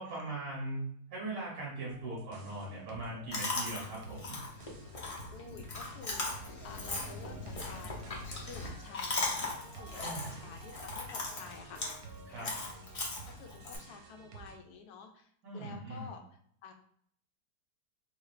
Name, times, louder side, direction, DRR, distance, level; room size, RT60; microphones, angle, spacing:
voice 1, 0.0-4.4 9.9-10.4 12.3-12.5 15.4-16.1, right 2 dB, 65° right, -5 dB, 1.5 m, -40 dB
sound 1, 1.9-14.6, right 5 dB, 90° right, 1.2 m, -52 dB
Chewing mastication, 3.3-13.8, left 2 dB, 40° left, 0.5 m, -39 dB
voice 2, 5.3-8.0 8.4-12.0 12.3-12.6 13.3-16.7, left 5 dB, 75° left, 3 dB, 1.1 m, -51 dB
3.8 x 3.2 x 2.4 m, 0.65 s
omnidirectional pair, 1.8 m